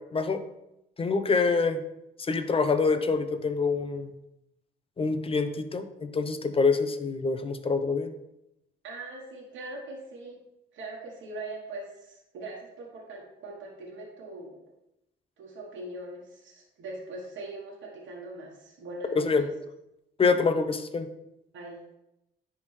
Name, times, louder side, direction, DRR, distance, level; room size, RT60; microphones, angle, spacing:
voice 1, 1.0-1.8 2.2-4.1 5.0-8.1 19.2-19.5 20.2-21.1, left 4 dB, 30° left, 9 dB, 0.6 m, -26 dB
voice 2, 8.8-10.4 10.7-14.6 15.4-19.3 21.5-21.8, right 2 dB, 75° right, -3 dB, 1.3 m, -41 dB
10.5 x 3.5 x 3.2 m, 0.87 s
cardioid pair, 90°, 20 cm